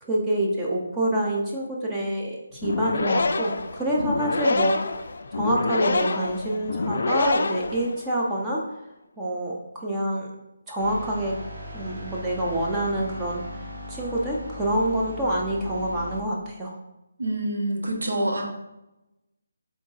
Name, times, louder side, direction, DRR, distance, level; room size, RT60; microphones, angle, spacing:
voice 1, 0.0-4.9 5.3-8.6 9.2-10.3 10.7-11.3 11.7-13.4 13.9-16.8, right 1 dB, 10° right, -3 dB, 0.5 m, -26 dB
sound 1, 2.5-8.3, left 3 dB, 60° left, 0.3 m, -27 dB
sound 2, 10.8-16.2, left 1 dB, 60° right, 1.2 m, -38 dB
voice 2, 17.2-18.4, right 1 dB, 80° right, 2 dB, 1.0 m, -26 dB
3.7 x 3.5 x 4.0 m, 0.92 s
hypercardioid pair, 165°, 0 cm